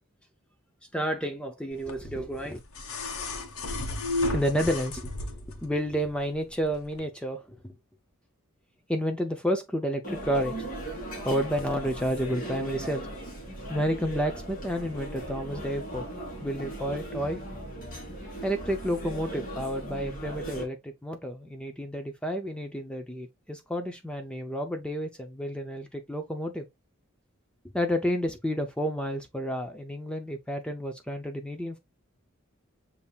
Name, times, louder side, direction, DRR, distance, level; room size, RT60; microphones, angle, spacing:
voice 1, 0.9-2.6 4.3-5.1 5.5-7.7 8.9-10.6 11.2-13.1 13.6-16.1 16.4-17.4 18.4-26.7 27.7-31.8, equal, 5° left, 0.5 m, -30 dB
sound 1, 1.9-5.7 6.9-7.0, left 2 dB, 85° left, 1.1 m, -33 dB
sound 2, 10.0-20.6, right 1 dB, 40° left, 1.9 m, -38 dB
7.2 x 2.8 x 2.3 m
head